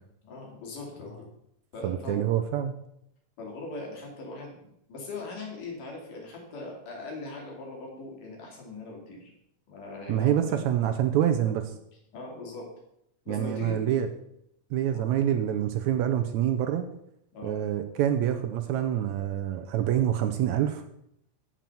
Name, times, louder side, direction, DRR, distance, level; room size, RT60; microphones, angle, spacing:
voice 1, 0.2-1.3 1.7-2.2 3.4-9.3 9.7-10.6 12.1-12.7 13.3-14.0 14.9-15.1 17.3-17.5, left 3 dB, 75° left, -1 dB, 4.2 m, -40 dB
voice 2, 1.8-2.8 10.1-11.7 13.3-14.1 14.7-16.9 17.4-20.8, right 10 dB, 80° right, 7 dB, 1.8 m, -26 dB
7.5 x 7.4 x 6.9 m, 0.76 s
omnidirectional pair, 3.7 m